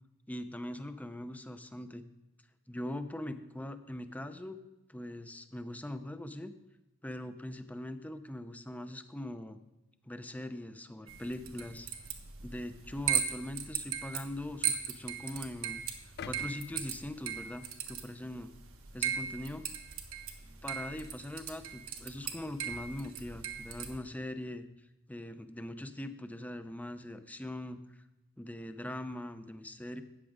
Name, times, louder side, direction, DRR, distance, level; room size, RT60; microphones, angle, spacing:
voice 1, 0.3-2.0 2.7-4.6 4.9-6.5 7.0-9.6 10.0-11.9 12.4-18.5 18.9-19.6 20.4-24.7 25.1-28.0 28.4-30.0, left 1 dB, 5° left, 9 dB, 0.6 m, -41 dB
sound 1, 11.1-24.0, right 8 dB, 70° right, 1.3 m, -38 dB
sound 2, 16.2-18.3 18.8-19.0, left 7 dB, 50° left, 0.4 m, -49 dB
13.0 x 9.2 x 3.6 m, 0.99 s
head